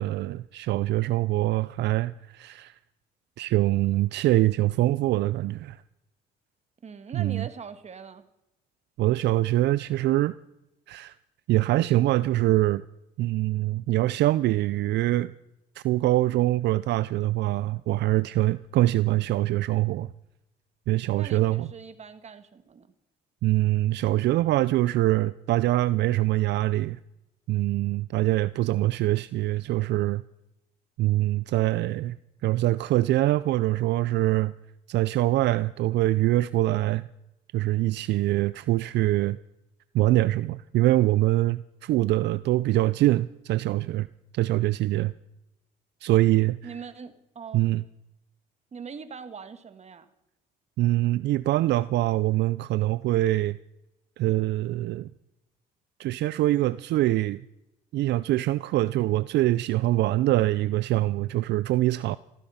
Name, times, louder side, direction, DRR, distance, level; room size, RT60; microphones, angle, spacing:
voice 1, 0.0-2.8 3.4-5.8 7.1-7.5 9.0-10.3 10.9-11.1 11.5-12.8 13.2-15.3 15.8-20.1 20.9-21.7 23.4-27.0 27.5-30.2 31.0-32.2 32.4-34.5 34.9-37.1 37.5-39.4 39.9-44.1 44.3-45.1 46.0-46.7 47.5-47.8 50.8-53.6 54.2-55.1 56.0-57.4 57.9-62.2, right 16 dB, 70° right, 0.5 m, -24 dB
voice 2, 6.8-8.2 21.1-22.9 46.6-47.7 48.7-50.1, right 6 dB, 40° right, 1.7 m, -41 dB
15.5 x 15.0 x 5.7 m
cardioid pair, 85°, 18 cm